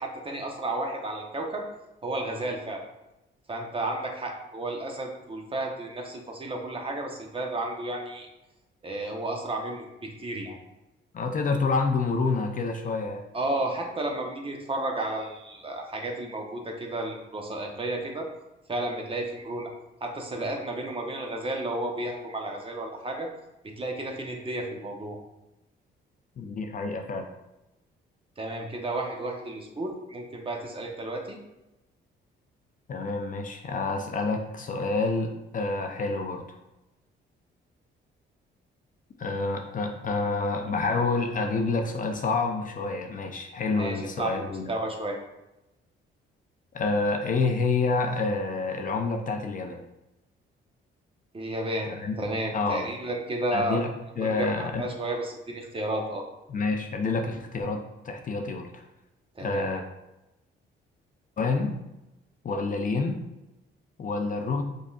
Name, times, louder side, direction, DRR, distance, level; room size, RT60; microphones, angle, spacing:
voice 1, 0.0-1.6 2.0-2.8 3.5-8.3 8.8-10.6 13.3-18.3 18.7-19.7 20.0-23.3 23.8-25.2 28.4-31.4 43.7-44.4 44.7-45.2 51.3-51.9 52.2-53.8 54.2-56.2 59.4-59.7, right 1 dB, 25° right, 2 dB, 0.9 m, -32 dB
voice 2, 11.1-13.2 26.4-27.3 32.9-36.6 39.2-44.7 46.7-49.9 51.9-52.1 52.5-52.9 53.5-54.9 56.5-58.8 59.4-59.8 61.4-61.7 62.4-63.2 64.0-64.6, left 3 dB, 40° left, 4 dB, 0.6 m, -28 dB
5.1 x 4.0 x 2.4 m, 0.94 s
cardioid pair, 90°, 20 cm